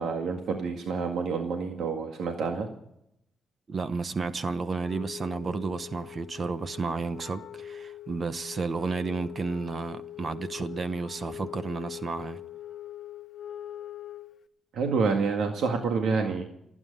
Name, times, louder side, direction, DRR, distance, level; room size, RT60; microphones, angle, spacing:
voice 1, 0.0-2.7 14.7-16.4, right 4 dB, 75° right, 1.9 m, -28 dB
voice 2, 3.7-12.4, right 4 dB, 35° right, 0.9 m, -32 dB
Wind instrument woodwind instrument, 4.7-14.5, left 11 dB, 55° left, 0.8 m, -43 dB
28.0 x 9.6 x 5.4 m
cardioid pair, 135°, 0 cm